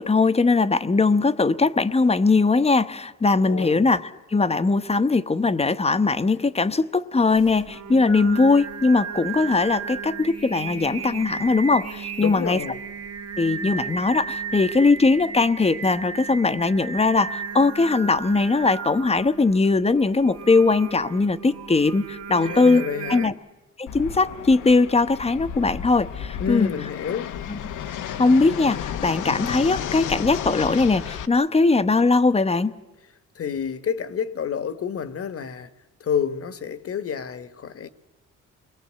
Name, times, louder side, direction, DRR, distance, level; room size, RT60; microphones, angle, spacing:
voice 1, 0.0-4.0 4.3-12.6 13.4-23.3 23.8-26.7 27.5-27.6 28.2-32.7, left 3 dB, 20° left, 1.0 m, -20 dB
voice 2, 3.4-3.8 12.2-12.8 22.4-23.3 26.4-27.3 33.3-35.7 36.0-37.9, left 7 dB, 50° left, 1.4 m, -29 dB
Singing, 7.3-23.3, right 6 dB, 55° right, 2.3 m, -35 dB
Fixed-wing aircraft airplane, 23.9-31.3, left 9 dB, 80° left, 1.1 m, -33 dB
28.5 x 22.5 x 7.6 m
cardioid pair, 90°, 30 cm